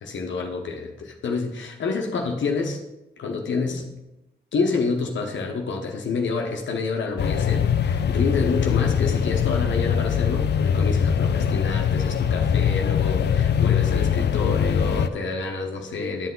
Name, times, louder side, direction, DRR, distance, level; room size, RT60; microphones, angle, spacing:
voice 1, 0.0-0.9 1.2-2.8 3.2-3.9 4.5-16.3, left 4 dB, 80° left, 2 dB, 0.9 m, -28 dB
sound 1, 7.2-15.1, left 7 dB, 65° left, 0.5 m, -22 dB
10.5 x 5.6 x 3.8 m, 0.98 s
cardioid pair, 50°, 19 cm